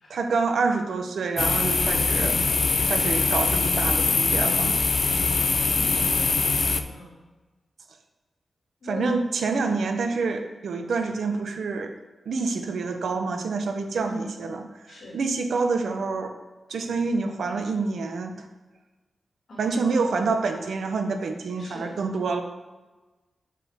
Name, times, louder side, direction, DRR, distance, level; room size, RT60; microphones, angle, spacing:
voice 1, 0.1-2.4 2.8-4.8 8.8-11.9 12.3-16.3 16.7-18.5 19.6-22.4, right 4 dB, 85° right, 6 dB, 0.8 m, -27 dB
sound 1, 1.4-6.8, left 4 dB, 50° left, 0.4 m, -23 dB
voice 2, 5.4-7.2 8.8-9.1 9.5-9.9 14.0-14.3 14.9-15.2 19.5-20.2 21.6-21.9, equal, 70° left, -4 dB, 2.5 m, -39 dB
7.5 x 6.0 x 3.6 m, 1.2 s
wide cardioid pair, 105°, 0 cm